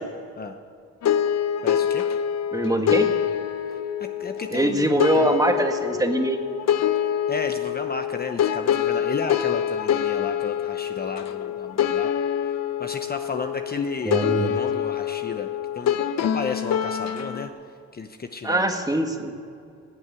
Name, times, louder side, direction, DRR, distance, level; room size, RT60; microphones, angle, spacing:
sound 1, 1.0-17.5, left 9 dB, 60° left, 0.9 m, -25 dB
voice 1, 1.6-2.0 4.2-5.3 7.3-12.1 12.8-15.5 15.7-17.5 17.9-18.7, left 4 dB, 30° left, 6 dB, 0.9 m, -33 dB
voice 2, 2.5-3.1 4.5-6.4 14.1-14.6 18.4-19.3, right 1 dB, 10° right, 4 dB, 1.7 m, -22 dB
17.0 x 8.1 x 9.0 m, 2.3 s
cardioid pair, 90°, 30 cm